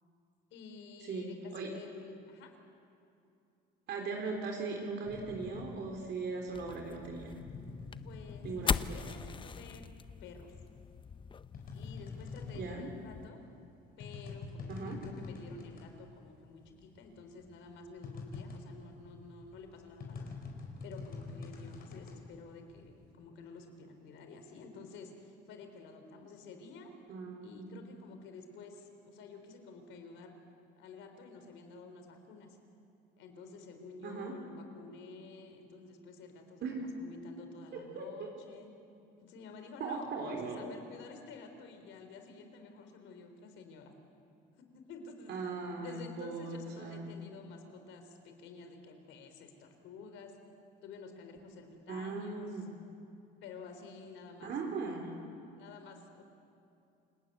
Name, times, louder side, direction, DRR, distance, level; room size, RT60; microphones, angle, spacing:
voice 1, 0.5-2.5 8.0-9.8 10.2-10.5 11.7-13.4 14.0-20.3 20.8-26.9 27.4-30.4 30.8-32.6 33.2-36.7 36.9-38.7 39.2-43.9 44.7-45.4 45.8-50.3 50.8-52.6 53.4-54.5 55.6-56.2, left 4 dB, 80° left, 5 dB, 4.2 m, -51 dB
voice 2, 1.0-1.7 3.9-7.3 8.4-9.0 12.5-12.9 14.7-15.0 27.1-27.7 34.0-34.3 36.6-36.8 37.7-38.3 39.8-40.7 45.3-47.1 51.9-52.7 54.4-55.1, right 4 dB, 60° right, 1 dB, 3.7 m, -39 dB
sound 1, 5.1-9.8 10.1-16.0 16.2-16.3 16.6-23.1, left 4 dB, 50° left, 4.6 m, -46 dB
sound 2, 6.5-13.3, left 6 dB, 25° left, 0.6 m, -40 dB
29.0 x 18.0 x 9.4 m, 2.6 s
cardioid pair, 115°, 20 cm